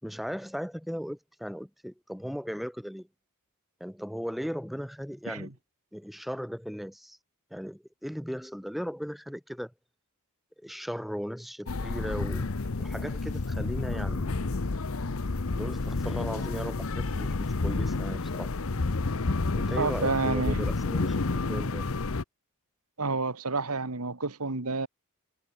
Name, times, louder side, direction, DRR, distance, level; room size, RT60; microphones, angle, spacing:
voice 1, 0.0-3.1 3.8-5.5 5.9-7.2 7.5-9.7 10.6-12.5 12.8-14.6 15.6-18.5 19.5-21.2 21.5-21.9, equal, ahead, 7.9 m, -37 dB
sound 1, 11.7-22.2, left 3 dB, 65° left, 0.9 m, -30 dB
voice 2, 19.8-20.7 23.0-24.9, right 3 dB, 85° right, 1.9 m, -29 dB
head